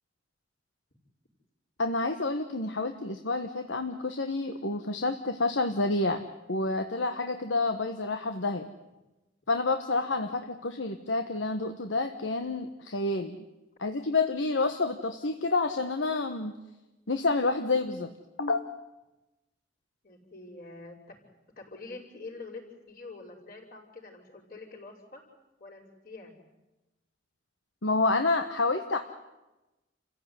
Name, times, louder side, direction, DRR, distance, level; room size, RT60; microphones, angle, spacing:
voice 1, 1.8-6.2 6.5-8.7 9.5-13.4 13.8-16.6 17.1-18.1 18.4-18.7 27.8-29.0, left 3 dB, 80° left, 7 dB, 1.4 m, -29 dB
voice 2, 20.0-21.2 21.6-25.2 25.6-26.4, left 3 dB, 50° left, -7 dB, 5.7 m, -45 dB
29.0 x 15.5 x 9.7 m, 1.0 s
head